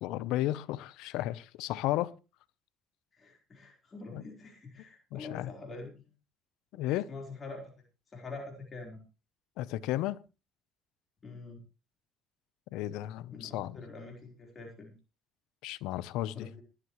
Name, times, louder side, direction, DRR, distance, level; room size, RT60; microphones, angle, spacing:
voice 1, 0.0-2.1 4.1-4.2 5.1-5.5 6.7-7.1 9.6-10.2 12.7-13.8 15.6-16.5, left 15 dB, 75° left, 0.8 m, -33 dB
voice 2, 3.1-6.1 6.7-6.8 7.1-7.7 8.1-9.0 11.2-11.6 13.3-14.9 16.3-16.6, left 3 dB, 35° left, 4.2 m, -45 dB
19.0 x 12.0 x 3.2 m
supercardioid pair, 80°, 0 cm